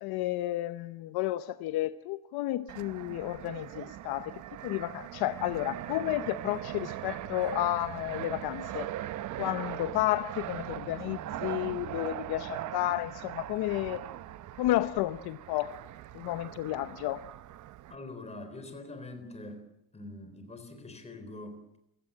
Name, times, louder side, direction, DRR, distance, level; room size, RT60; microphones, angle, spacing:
voice 1, 0.0-4.3 4.6-8.9 9.4-14.1 14.6-15.7 16.1-17.2, left 15 dB, 65° left, 0.9 m, -32 dB
Fixed-wing aircraft airplane, 2.7-18.0, right 13 dB, 45° right, 0.8 m, -40 dB
voice 2, 17.9-19.7 19.9-21.8, left 2 dB, 15° left, 3.9 m, -44 dB
28.5 x 16.5 x 8.5 m
cardioid pair, 170°, 41 cm